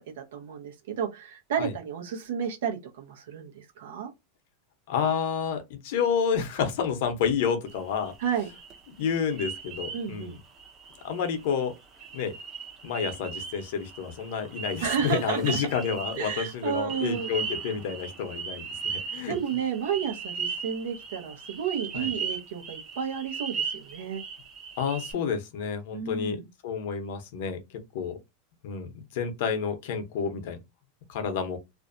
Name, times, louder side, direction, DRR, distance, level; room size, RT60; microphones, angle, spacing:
voice 1, 0.0-4.1 8.2-8.5 9.9-10.4 14.8-15.6 16.2-17.3 19.3-24.2 25.9-26.5, right 8 dB, 80° right, 0.7 m, -32 dB
voice 2, 4.9-8.1 9.0-10.4 11.0-11.7 12.1-12.3 12.8-19.3 21.9-22.1 24.8-27.6 27.9-28.2 28.6-30.6 31.1-31.6, left 6 dB, 70° left, 0.7 m, -29 dB
sound 1, 7.7-25.1, right 5 dB, 30° right, 0.7 m, -38 dB
2.5 x 2.2 x 2.5 m
supercardioid pair, 130°, 0 cm